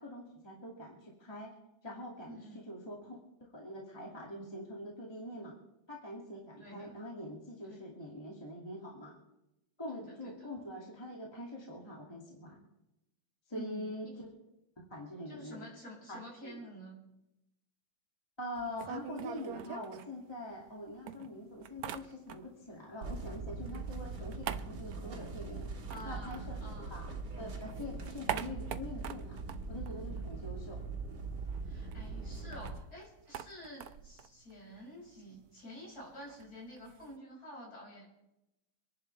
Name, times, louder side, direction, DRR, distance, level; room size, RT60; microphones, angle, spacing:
voice 1, 0.0-1.5 1.8-5.5 5.9-9.1 9.8-12.6 13.5-14.3 14.9-15.7 16.1-16.6 18.4-25.7 26.0-26.6 26.9-29.4 29.7-30.8, left 1 dB, 10° left, -3 dB, 2.3 m, -44 dB
voice 2, 2.3-2.6 6.6-6.9 7.7-7.8 9.9-10.3 13.5-14.1 15.3-17.0 25.9-27.0 31.6-38.1, equal, 45° left, -4 dB, 6.4 m, -49 dB
sound 1, 18.6-20.7 21.1-22.7 23.0-27.1 27.4-30.7 31.0-31.1 31.4-37.2, right 10 dB, 75° right, 0.8 m, -45 dB
sound 2, 23.0-32.8, right 4 dB, 55° right, 2.3 m, -41 dB
26.5 x 11.0 x 3.3 m, 0.91 s
omnidirectional pair, 2.3 m